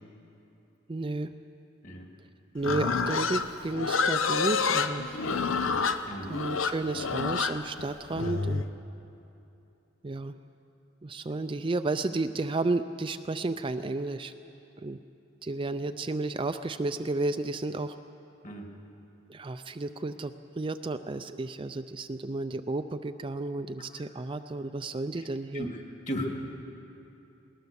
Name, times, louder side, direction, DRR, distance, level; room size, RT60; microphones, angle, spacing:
voice 1, 0.9-1.3 2.5-5.1 6.3-8.7 10.0-10.4 11.0-14.3 14.8-15.0 15.4-17.9 19.3-25.7, right 2 dB, 25° right, 9 dB, 0.4 m, -32 dB
Livestock farm animals working animals, 2.6-8.7, left 5 dB, 90° left, 0.8 m, -28 dB
voice 2, 25.5-26.4, equal, 40° left, 2 dB, 2.3 m, -36 dB
20.0 x 19.0 x 7.0 m, 2.9 s
head